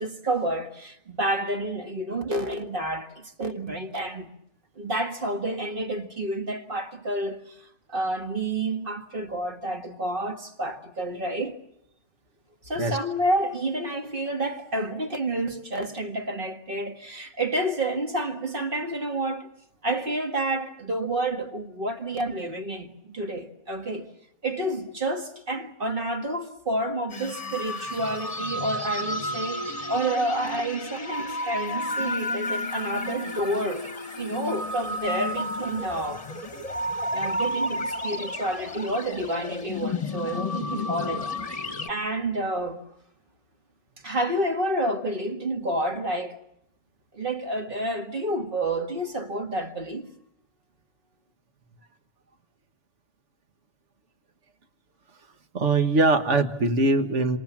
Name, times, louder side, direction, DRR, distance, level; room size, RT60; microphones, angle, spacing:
voice 1, 0.0-4.3 4.8-11.6 12.6-19.5 19.8-24.1 24.4-33.9 34.2-36.3 37.1-42.8 44.0-46.4 47.1-50.1, right 1 dB, 45° right, 2.0 m, -29 dB
sound 1, 27.1-41.9, left 1 dB, 30° left, 1.2 m, -32 dB
voice 2, 55.5-57.4, right 2 dB, 70° right, 1.8 m, -22 dB
27.0 x 26.5 x 7.4 m
omnidirectional pair, 1.3 m